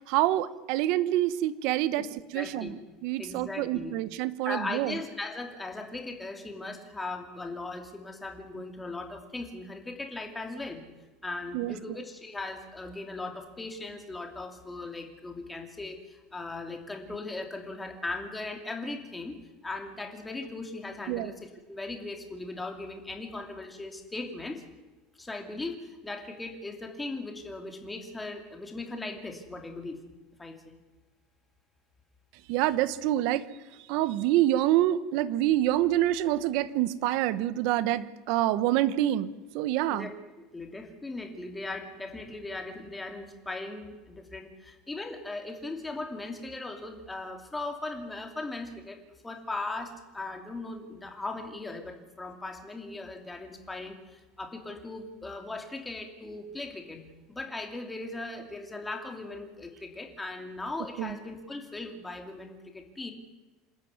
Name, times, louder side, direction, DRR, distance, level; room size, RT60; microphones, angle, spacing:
voice 1, 0.1-2.1 2.3-2.7 3.0-4.9 11.5-11.7 21.1-21.3 32.5-33.5 33.9-40.1 61.0-61.2, right 14 dB, 55° right, 15 dB, 1.1 m, -26 dB
voice 2, 2.3-2.8 3.2-3.9 4.4-10.8 11.2-24.6 25.2-30.0 30.4-30.8 39.9-40.1 40.5-57.0 57.3-63.1, left 2 dB, 10° left, 4 dB, 2.8 m, -38 dB
27.0 x 13.0 x 9.7 m, 1.1 s
cardioid pair, 165°, 0 cm